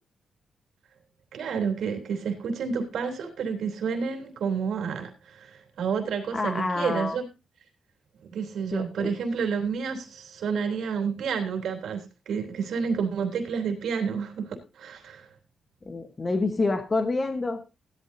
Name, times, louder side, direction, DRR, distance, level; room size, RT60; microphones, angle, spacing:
voice 1, 1.3-7.2 8.3-15.3, right 6 dB, 80° right, 4 dB, 3.3 m, -30 dB
voice 2, 6.3-7.2 8.7-9.1 15.8-17.6, left 3 dB, 25° left, 7 dB, 1.2 m, -27 dB
16.5 x 12.0 x 2.7 m, 0.28 s
wide cardioid pair, 135°, 0 cm